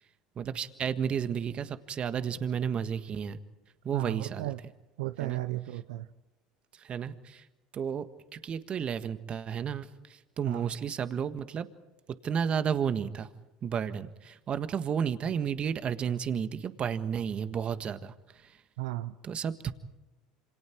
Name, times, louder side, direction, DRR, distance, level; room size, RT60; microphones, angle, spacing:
voice 1, 0.4-3.4 3.8-4.5 5.2-5.4 6.8-7.4 7.7-8.1 8.3-11.7 12.2-13.3 13.6-18.1 18.4-18.5 19.2-19.7, right 7 dB, 40° right, 11 dB, 1.6 m, -32 dB
voice 2, 3.9-4.6 5.0-6.1 10.5-10.7 18.8-19.1, right 17 dB, 80° right, 13 dB, 0.7 m, -34 dB
27.5 x 26.5 x 4.6 m, 1.0 s
hypercardioid pair, 90°, 3 cm